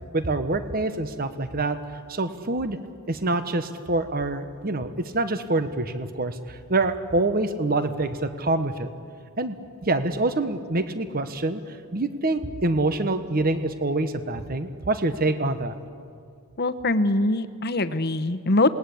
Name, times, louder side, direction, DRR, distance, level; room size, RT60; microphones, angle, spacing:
voice 1, 0.1-1.8 2.1-2.8 3.1-8.9 9.4-9.5 9.8-11.6 11.9-15.8, right 2 dB, 40° right, 10 dB, 1.2 m, -26 dB
voice 2, 16.6-18.7, left 2 dB, 45° left, 12 dB, 1.0 m, -23 dB
28.0 x 20.5 x 8.6 m, 2.3 s
head